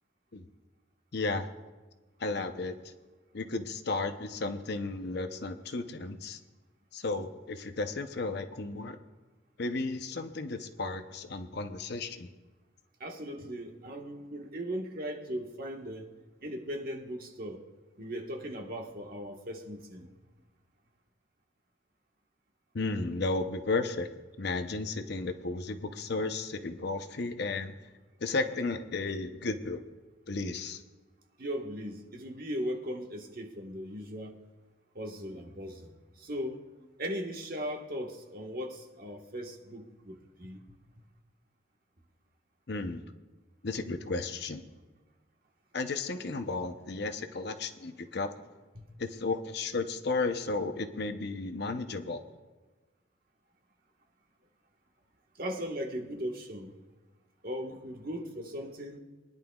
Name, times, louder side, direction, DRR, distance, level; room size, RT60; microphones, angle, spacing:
voice 1, 1.1-1.5 2.2-2.9 3.3-6.4 6.9-9.0 9.6-12.3 22.7-24.1 24.4-27.7 28.2-29.8 30.3-30.8 42.7-43.0 43.6-44.6 45.7-48.3 49.0-52.2, left 3 dB, 55° left, 8 dB, 0.7 m, -33 dB
voice 2, 13.0-16.1 16.4-17.6 18.0-20.1 31.4-34.4 34.9-36.6 37.0-40.8 48.7-48.9 55.4-56.7 57.4-59.0, equal, 50° right, 2 dB, 1.4 m, -38 dB
23.0 x 10.5 x 2.4 m, 1.3 s
head